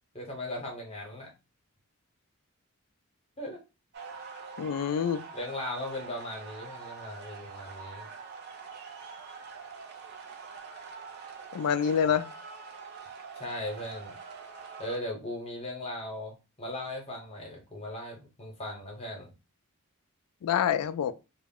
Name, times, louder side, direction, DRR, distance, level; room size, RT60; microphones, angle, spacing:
voice 1, 0.1-1.3 3.4-3.6 5.3-8.1 13.3-14.1 14.8-19.3, left 1 dB, 25° left, 0.8 m, -38 dB
sound 1, 3.9-15.0, right 5 dB, 45° right, 0.4 m, -45 dB
voice 2, 4.6-5.2 11.5-12.3 20.4-21.1, left 8 dB, 85° left, 0.3 m, -26 dB
2.2 x 2.0 x 3.5 m
head